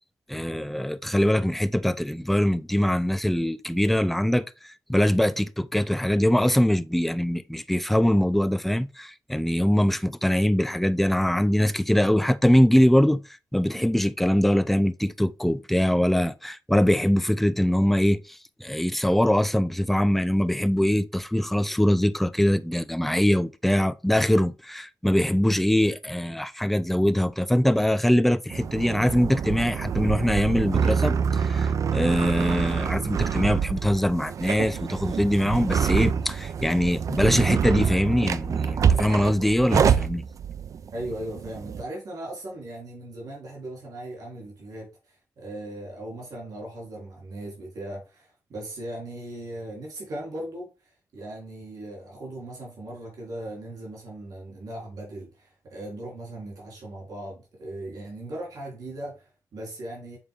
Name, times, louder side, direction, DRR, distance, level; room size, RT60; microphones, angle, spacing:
voice 1, 0.3-13.2 13.5-40.2, equal, 5° left, 0.5 m, -23 dB
sound 1, 28.5-41.8, right 7 dB, 60° right, 0.4 m, -26 dB
voice 2, 40.9-60.2, right 1 dB, 75° right, 3.1 m, -38 dB
7.2 x 3.8 x 3.5 m
cardioid pair, 95°, 6 cm